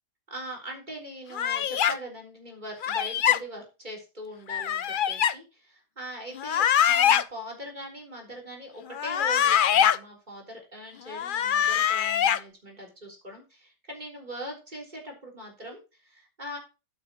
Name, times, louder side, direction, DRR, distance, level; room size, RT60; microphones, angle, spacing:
voice 1, 0.3-16.6, equal, 30° right, 0 dB, 3.8 m, -41 dB
sound 1, 1.3-1.9 2.8-3.4 4.5-5.3 6.3-7.2 8.9-10.0 11.1-12.4, left 9 dB, 80° left, 0.4 m, -23 dB
12.0 x 8.8 x 3.0 m, 0.29 s
omnidirectional pair, 1.6 m